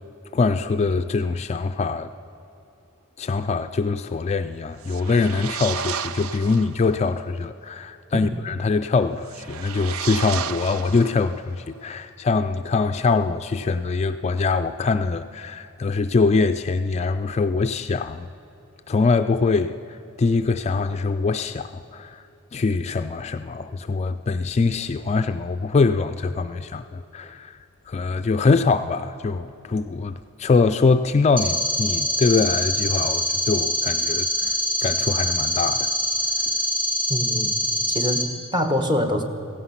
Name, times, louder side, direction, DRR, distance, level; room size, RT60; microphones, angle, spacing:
voice 1, 0.3-2.1 3.2-18.3 18.9-22.2 22.5-27.6 27.9-35.9 36.4-36.5, left 4 dB, 30° left, 10 dB, 0.3 m, -23 dB
sound 1, 4.8-6.8 9.2-11.5, right 8 dB, 90° right, 0.5 m, -32 dB
sound 2, 31.4-38.2, equal, 40° right, 2.0 m, -24 dB
voice 2, 37.1-37.5 37.9-39.2, left 1 dB, 20° right, 5 dB, 1.1 m, -24 dB
16.0 x 15.5 x 5.7 m, 2.8 s
head